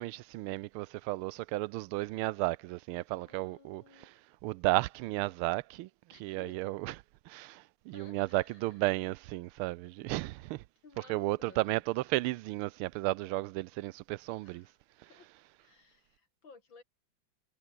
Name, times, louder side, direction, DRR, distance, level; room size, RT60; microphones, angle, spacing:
voice 1, 0.0-6.9 7.3-10.6 11.0-14.7 15.0-15.1, right 19 dB, 85° right, 1.5 m, -34 dB
voice 2, 3.1-4.1 6.1-6.5 6.9-7.0 7.9-8.7 10.8-11.8 14.4-14.8 15.1-15.3 15.6-16.8, left 4 dB, 65° left, 4.4 m, -57 dB
omnidirectional pair, 2.3 m